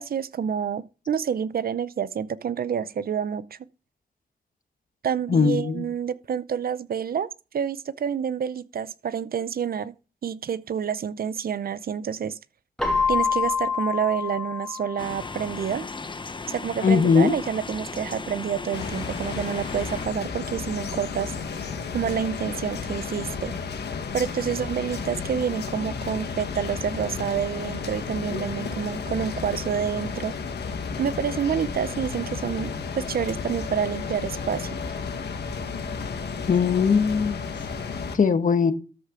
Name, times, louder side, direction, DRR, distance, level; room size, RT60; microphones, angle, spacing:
voice 1, 0.0-3.6 5.0-7.3 7.5-9.9 10.2-12.4 13.1-15.9 16.5-21.3 21.9-23.5 24.1-30.3 31.0-34.7, right 8 dB, 65° right, 0.6 m, -28 dB
voice 2, 5.3-5.8 16.8-17.3 36.5-37.4 38.1-38.7, left 5 dB, 55° left, 1.1 m, -20 dB
Keyboard (musical), 12.8-15.5, left 5 dB, 5° left, 2.5 m, -26 dB
sound 1, 15.0-20.1, left 3 dB, 30° left, 0.8 m, -36 dB
sound 2, 18.7-38.2, left 5 dB, 90° left, 1.4 m, -32 dB
13.0 x 6.4 x 3.7 m
wide cardioid pair, 105°, 17 cm